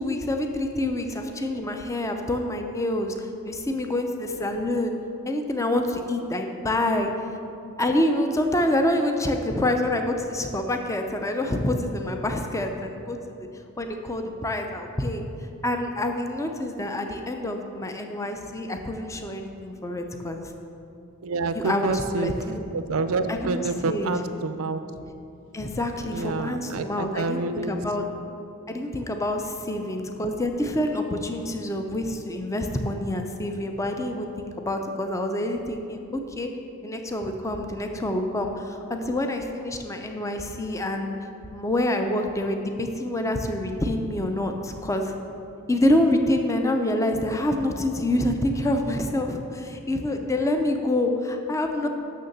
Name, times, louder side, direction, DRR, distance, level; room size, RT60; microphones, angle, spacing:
voice 1, 0.0-5.0 5.3-7.2 7.8-13.5 13.8-15.2 15.6-20.4 21.5-22.6 23.3-24.1 25.5-28.0 28.7-36.5 36.8-41.2 41.5-45.1 45.7-51.9, left 1 dB, 15° left, 5 dB, 0.5 m, -27 dB
voice 2, 21.2-22.4 22.7-24.8 26.0-27.7, right 3 dB, 75° right, 10 dB, 0.5 m, -28 dB
6.7 x 6.4 x 6.7 m, 2.7 s
head